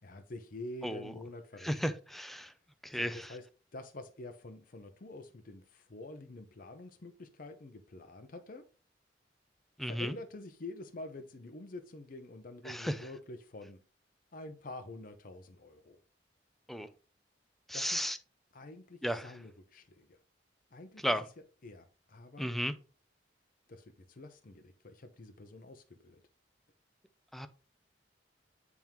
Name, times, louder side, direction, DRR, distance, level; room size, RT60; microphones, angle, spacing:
voice 1, 0.0-1.7 2.9-3.5 3.7-8.6 9.8-13.8 14.3-16.0 17.7-18.0 18.5-20.2 20.7-21.2 21.6-22.6 23.7-26.2, left 2 dB, 50° left, 0.7 m, -47 dB
voice 2, 1.6-2.5 2.8-3.3 9.8-10.1 12.7-12.9 16.7-16.9 17.7-18.2 19.0-19.3 21.0-21.3 22.4-22.7 27.3-27.5, equal, ahead, 0.4 m, -34 dB
8.9 x 3.6 x 2.9 m
head